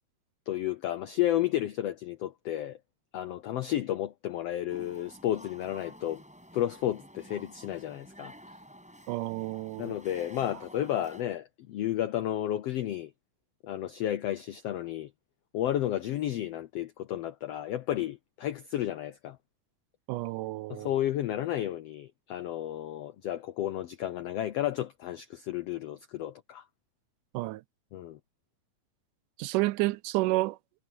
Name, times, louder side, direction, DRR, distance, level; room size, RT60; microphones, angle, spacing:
voice 1, 0.5-2.8 3.1-6.2 6.5-8.3 9.8-13.1 13.6-15.1 15.5-19.4 20.7-26.6 27.9-28.2, left 12 dB, 80° left, 1.4 m, -32 dB
sound 1, 4.7-11.2, equal, ahead, 7.3 m, -51 dB
voice 2, 9.1-10.0 20.1-20.9 27.3-27.6 29.4-30.6, right 19 dB, 80° right, 2.0 m, -30 dB
omnidirectional pair, 3.8 m